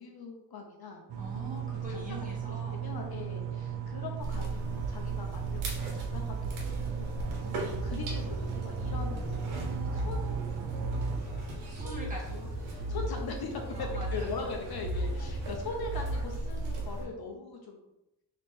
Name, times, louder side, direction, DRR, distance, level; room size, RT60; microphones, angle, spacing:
voice 1, 0.0-1.0 1.6-2.0 2.5-7.4 7.8-9.5 9.9-10.7 11.3-17.8, left 4 dB, 55° left, 2 dB, 0.7 m, -41 dB
sound 1, 1.1-11.2, right 8 dB, 70° right, 0.8 m, -37 dB
voice 2, 1.2-2.8 7.2-7.9 11.7-12.7 13.7-14.5, equal, 15° right, -4 dB, 1.5 m, -44 dB
sound 2, 4.2-17.1, right 2 dB, 90° right, 1.3 m, -35 dB
3.4 x 3.1 x 4.3 m, 0.89 s
cardioid pair, 110°, 46 cm